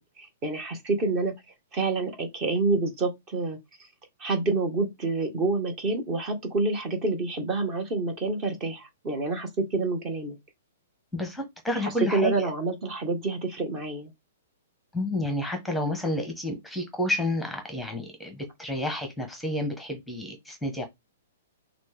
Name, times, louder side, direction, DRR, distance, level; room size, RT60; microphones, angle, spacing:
voice 1, 0.0-3.9 4.2-10.3 11.7-14.1, right 3 dB, 30° right, 1.6 m, -28 dB
voice 2, 11.1-12.3 14.9-20.9, left 1 dB, ahead, 1.2 m, -30 dB
6.0 x 2.5 x 3.5 m
hypercardioid pair, 120°, 0 cm